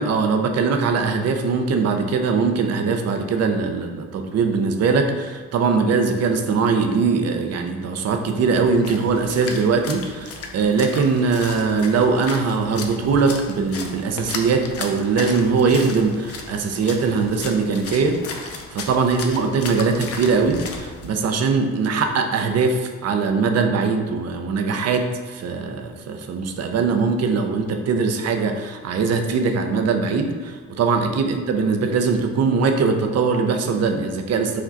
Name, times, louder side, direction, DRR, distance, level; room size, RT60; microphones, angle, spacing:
voice 1, 0.0-34.6, right 4 dB, 55° right, 5 dB, 0.6 m, -21 dB
Splash splatter, 8.4-21.1, left 4 dB, 50° left, 0.6 m, -35 dB
5.0 x 2.2 x 3.9 m, 1.5 s
cardioid pair, 90°, 30 cm